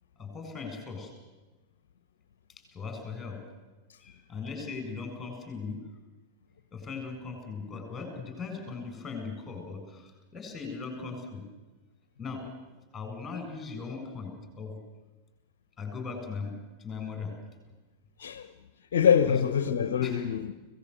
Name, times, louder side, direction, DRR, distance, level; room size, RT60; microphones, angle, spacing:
voice 1, 0.2-1.1 2.7-3.4 4.0-5.8 6.7-11.4 12.2-12.4 12.9-14.7 15.8-16.5 16.8-17.3 19.2-19.3 20.0-20.2, left 4 dB, 15° left, 7.3 m, -38 dB
voice 2, 18.2-18.5 18.9-20.5, left 8 dB, 60° left, 0.9 m, -24 dB
25.0 x 18.0 x 8.2 m
figure-of-eight pair, 90°, 0 cm